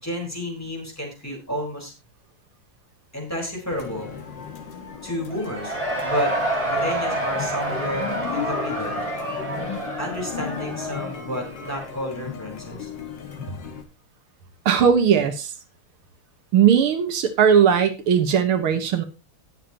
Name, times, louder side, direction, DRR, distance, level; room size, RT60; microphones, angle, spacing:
voice 1, 0.0-1.9 3.1-4.1 5.0-9.0 10.0-12.9, equal, 5° left, -1 dB, 4.2 m, -31 dB
sound 1, 3.7-13.8, left 7 dB, 60° left, 2.1 m, -35 dB
Cheering / Crowd, 5.3-12.0, right 1 dB, 15° right, 4.7 m, -28 dB
voice 2, 14.7-15.5 16.5-19.0, right 7 dB, 85° right, 8 dB, 2.2 m, -18 dB
19.5 x 7.1 x 2.9 m, 0.28 s
omnidirectional pair, 2.3 m